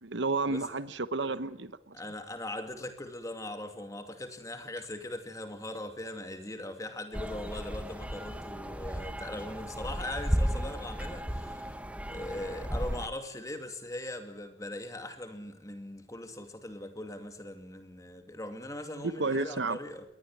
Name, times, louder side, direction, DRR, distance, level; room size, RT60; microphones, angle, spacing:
voice 1, 0.0-2.0 19.0-19.8, right 3 dB, 65° right, 14 dB, 1.1 m, -31 dB
voice 2, 1.9-11.8 12.1-20.0, left 1 dB, 15° left, 7 dB, 2.5 m, -40 dB
sound 1, 7.1-13.1, equal, 5° right, 1.2 m, -34 dB
22.0 x 19.0 x 9.5 m, 0.75 s
head